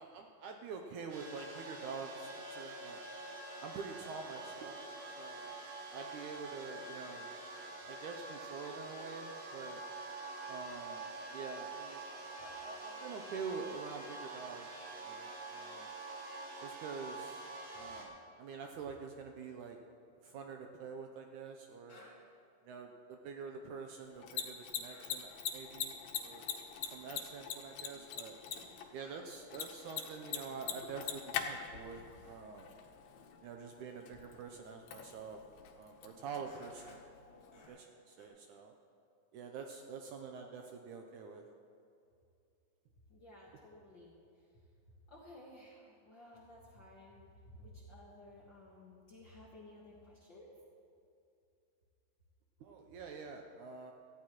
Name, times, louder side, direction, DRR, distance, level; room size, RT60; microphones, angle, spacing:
voice 1, 0.0-3.0 3.6-4.8 5.2-7.3 7.9-9.8 10.5-12.1 12.4-14.7 15.0-15.9 16.6-17.5 17.7-19.8 20.2-22.0 22.7-26.5 26.8-28.4 28.9-32.7 33.4-35.4 35.7-37.0 37.3-38.7 39.3-41.4 52.6-53.9, right 5 dB, 80° right, 3 dB, 1.9 m, -46 dB
sound 1, 1.1-18.0, right 2 dB, 65° right, 3.1 m, -46 dB
sound 2, 20.1-21.3 21.9-22.4 22.6-22.7 24.9-25.5 25.8-25.9 26.5-26.8 27.4-27.5 27.7-27.9 28.2-30.7 31.3-31.4 31.8-31.9 32.2-33.0 33.8-34.0 34.9-35.0 35.9-36.0 36.5-37.1 37.5-37.9 38.2-38.3, left 1 dB, 35° left, 3.0 m, -62 dB
Mechanisms, 24.1-37.7, left 8 dB, 80° left, 2.7 m, -44 dB
voice 2, 43.1-44.7 45.1-50.6, left 1 dB, 55° left, -4 dB, 1.2 m, -56 dB
18.0 x 14.5 x 3.0 m, 2.6 s
omnidirectional pair, 4.1 m